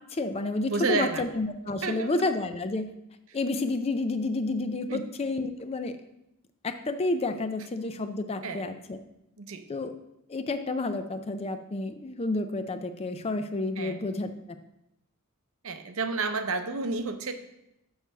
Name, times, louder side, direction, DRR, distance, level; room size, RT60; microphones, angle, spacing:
voice 1, 0.1-2.9 3.3-6.0 6.6-9.0 9.7-9.9 10.3-14.3, left 2 dB, 25° left, 9 dB, 0.4 m, -30 dB
voice 2, 0.7-1.2 1.8-2.1 4.9-5.0 8.4-8.6 9.4-9.6 13.8-14.0 15.6-17.3, right 3 dB, 65° right, 8 dB, 0.7 m, -30 dB
6.3 x 4.7 x 6.6 m, 0.84 s
head